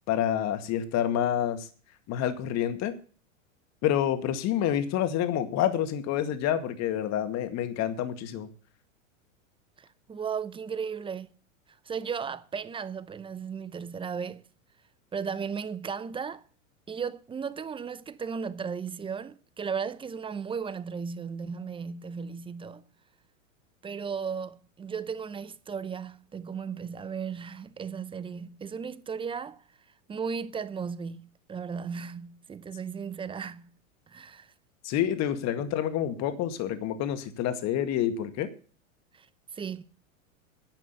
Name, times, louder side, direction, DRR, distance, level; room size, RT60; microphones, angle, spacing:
voice 1, 0.1-1.7 2.1-3.0 3.8-8.5 34.8-38.5, left 10 dB, 40° left, 2.0 m, -28 dB
voice 2, 9.8-11.3 11.9-14.4 15.1-16.4 16.9-22.8 23.8-29.6 30.1-33.7 34.1-34.5 39.1-39.3 39.5-39.8, right 6 dB, 15° right, 0.7 m, -35 dB
10.5 x 9.1 x 6.9 m
hypercardioid pair, 110°, 40 cm